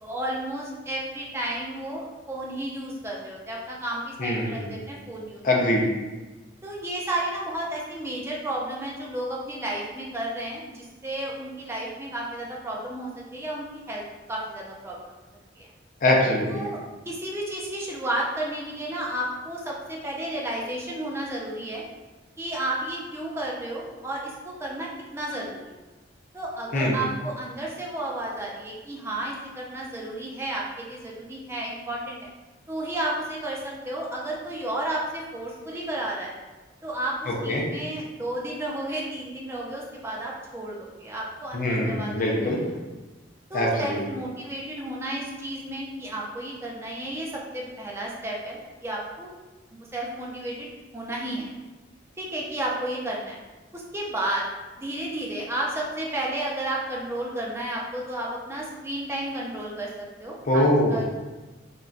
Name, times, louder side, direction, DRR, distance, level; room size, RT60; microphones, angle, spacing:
voice 1, 0.0-5.4 6.6-14.0 14.3-15.1 15.6-15.7 16.5-16.8 17.1-21.8 22.4-25.6 26.3-32.3 32.7-36.3 36.8-42.5 43.5-49.3 49.7-51.5 52.2-53.4 53.7-54.5 54.8-61.0, right 1 dB, 15° right, -3 dB, 0.4 m, -32 dB
voice 2, 4.2-4.8 5.4-5.8 16.0-16.7 26.7-27.0 37.3-37.6 41.5-42.6 43.5-44.0 60.4-61.0, left 1 dB, 45° left, -2 dB, 0.5 m, -23 dB
3.7 x 2.1 x 2.4 m, 1.2 s
head